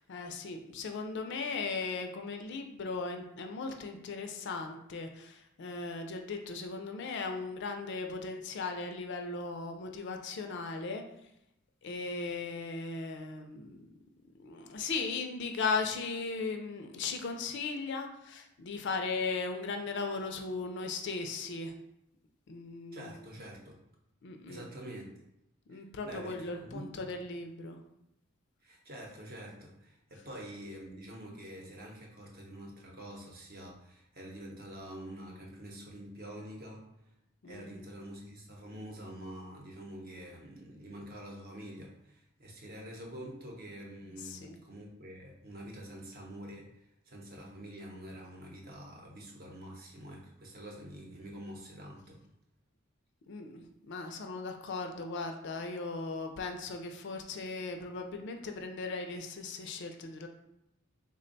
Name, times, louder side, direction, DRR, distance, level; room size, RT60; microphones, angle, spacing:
voice 1, 0.0-11.0 11.8-13.9 14.4-21.7 22.5-23.1 24.2-24.6 25.7-27.8 37.4-37.8 44.2-44.6 53.3-60.3, left 4 dB, 55° left, 5 dB, 0.4 m, -37 dB
voice 2, 22.9-23.8 24.5-25.1 25.7-27.1 28.6-36.9 37.4-46.7 47.1-52.2, equal, 45° right, -1 dB, 0.7 m, -46 dB
3.4 x 2.2 x 3.9 m, 0.83 s
head